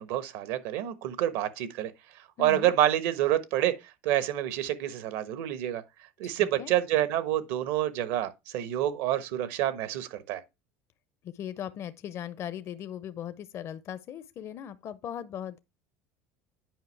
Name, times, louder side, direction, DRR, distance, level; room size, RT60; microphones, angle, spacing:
voice 1, 0.0-1.9 2.4-3.7 4.0-5.8 6.2-10.4, right 12 dB, 75° right, 1.2 m, -28 dB
voice 2, 2.4-2.7 6.2-6.7 11.3-15.6, left 10 dB, 45° left, 0.5 m, -38 dB
9.1 x 5.1 x 3.3 m
supercardioid pair, 115°, 7 cm